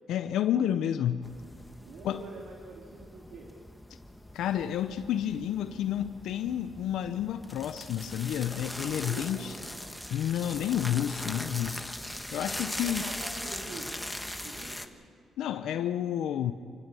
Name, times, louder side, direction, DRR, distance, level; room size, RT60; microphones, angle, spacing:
voice 1, 0.1-1.3 2.0-2.2 4.3-9.6 10.1-11.9 12.3-13.1 15.4-16.5, left 10 dB, 80° left, 9 dB, 0.6 m, -30 dB
sound 1, 1.2-14.9, left 1 dB, 5° left, 1.2 m, -40 dB
voice 2, 1.8-3.5 9.0-9.6 12.4-14.1 14.3-14.8, right 3 dB, 70° right, -1 dB, 2.7 m, -45 dB
26.5 x 16.0 x 7.0 m, 2.3 s
cardioid pair, 90°, 0 cm